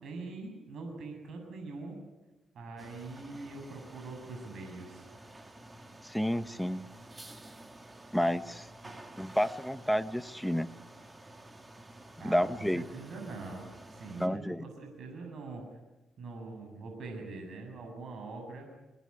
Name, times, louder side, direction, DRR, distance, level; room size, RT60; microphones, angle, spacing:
voice 1, 0.0-2.0 2.5-5.1 8.8-9.0 12.2-12.5 12.7-15.6 16.2-18.7, right 3 dB, 65° right, 2 dB, 7.5 m, -43 dB
sound 1, 2.8-14.3, right 1 dB, 20° right, 2.4 m, -51 dB
voice 2, 6.0-6.8 8.1-8.7 9.2-10.7 12.2-12.8 14.2-14.6, equal, ahead, 11 dB, 1.2 m, -30 dB
26.0 x 19.5 x 9.9 m, 1.1 s
cardioid pair, 95°, 0 cm